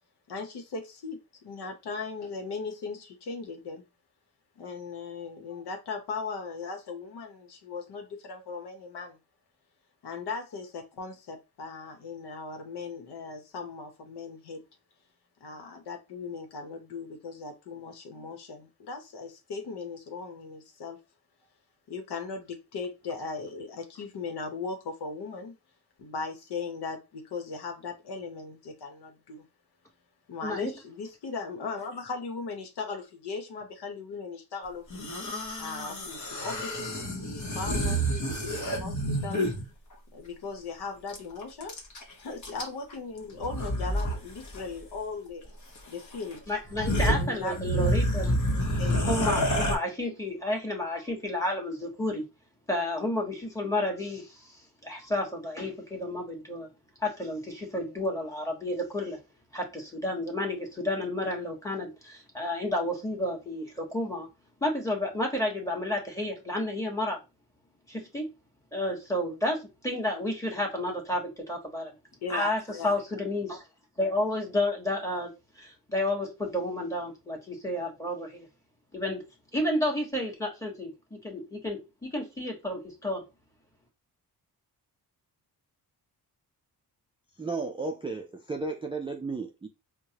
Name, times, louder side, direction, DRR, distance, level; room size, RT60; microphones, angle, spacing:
voice 1, 0.3-3.8 4.6-9.2 10.0-14.6 15.4-21.0 21.9-25.6 26.0-29.5 30.3-35.1 35.6-39.5 40.1-41.7 42.2-45.5 45.9-46.4 47.1-47.9 48.6-49.3 72.2-73.0, left 4 dB, 75° left, 1.0 m, -38 dB
voice 2, 30.4-30.7 46.5-48.3 49.0-52.2 52.7-54.6 54.8-56.7 57.0-59.2 59.5-64.3 64.6-67.2 67.9-68.3 68.7-71.9 72.3-73.6 74.0-78.5 78.9-79.3 79.5-83.2, left 1 dB, 10° left, 1.4 m, -31 dB
sound 1, 34.9-39.7 41.1-41.2 41.4-42.0 42.4-42.9 43.4-44.2 44.4-44.6 45.8-45.9 46.3-46.4 46.7-49.8, equal, 45° left, 1.2 m, -28 dB
voice 3, 87.4-89.7, right 3 dB, 15° right, 0.4 m, -34 dB
4.5 x 2.2 x 2.8 m
cardioid pair, 85°, 40 cm